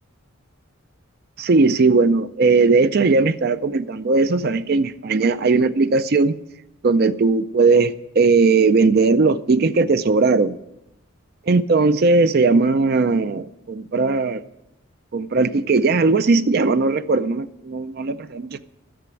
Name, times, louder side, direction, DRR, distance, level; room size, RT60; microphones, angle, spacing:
voice 1, 1.4-6.4 6.8-10.6 11.5-14.4 15.1-18.6, right 3 dB, 45° right, 0.4 m, -18 dB
11.5 x 6.9 x 9.4 m
head